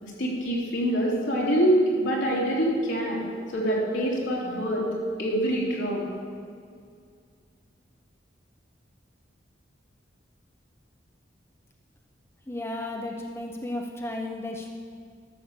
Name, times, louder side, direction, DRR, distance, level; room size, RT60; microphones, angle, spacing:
voice 1, 0.0-3.2 3.5-4.8 5.2-6.0, right 1 dB, 80° left, -4 dB, 3.2 m, -25 dB
voice 2, 12.5-14.7, left 1 dB, 15° left, 1 dB, 0.7 m, -34 dB
12.5 x 7.1 x 6.5 m, 2.2 s
head